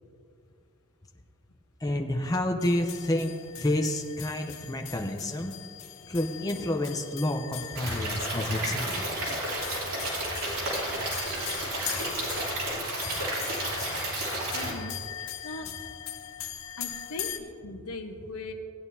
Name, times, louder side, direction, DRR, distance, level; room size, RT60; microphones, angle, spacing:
voice 1, 1.8-5.5 6.1-9.0, left 1 dB, 15° left, 3 dB, 0.6 m, -29 dB
sound 1, 2.6-17.4, left 10 dB, 60° left, 0.8 m, -41 dB
Stream / Liquid, 7.7-14.7, right 1 dB, 85° right, 3.0 m, -31 dB
voice 2, 14.5-15.7 16.8-18.5, left 2 dB, 85° left, 5 dB, 1.0 m, -40 dB
17.5 x 9.3 x 2.7 m, 2.4 s
head